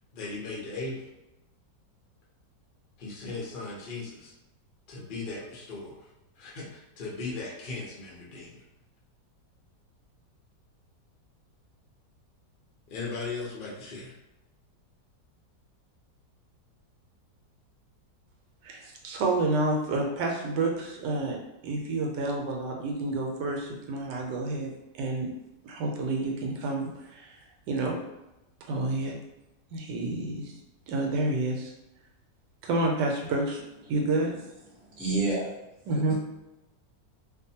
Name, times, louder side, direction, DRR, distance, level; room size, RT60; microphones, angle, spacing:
voice 1, 0.1-1.1 3.0-4.3 4.9-6.1 6.4-8.6 12.9-14.1, left 3 dB, 65° left, -4 dB, 0.5 m, -37 dB
voice 2, 18.6-21.4 21.6-25.3 25.6-27.3 27.7-28.0 28.7-29.1 29.7-30.5 30.9-31.7 32.6-33.6 33.9-34.4 35.9-36.1, right 2 dB, 75° right, 0 dB, 1.2 m, -29 dB
voice 3, 34.7-35.5 35.9-36.1, right 2 dB, ahead, -9 dB, 0.3 m, -29 dB
2.6 x 2.4 x 2.7 m, 0.94 s
omnidirectional pair, 1.9 m